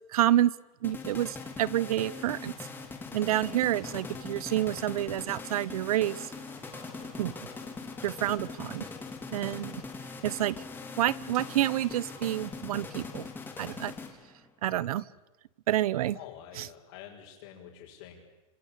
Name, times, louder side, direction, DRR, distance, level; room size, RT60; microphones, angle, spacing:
voice 1, 0.1-0.5 0.8-2.5 3.1-6.3 7.2-7.3 8.0-8.9 9.3-9.8 10.2-10.5 11.0-13.3 13.6-13.9 14.6-15.0 15.7-16.2 16.6-16.7, right 13 dB, 80° right, 22 dB, 1.1 m, -28 dB
sound 1, 0.8-14.5, left 4 dB, 10° left, 3.3 m, -41 dB
sound 2, 6.2-8.7 11.3-12.4, right 5 dB, 45° right, 6.3 m, -55 dB
voice 2, 16.1-18.3, left 10 dB, 55° left, -4 dB, 6.5 m, -47 dB
27.5 x 25.5 x 8.5 m, 1.1 s
supercardioid pair, 165°, 19 cm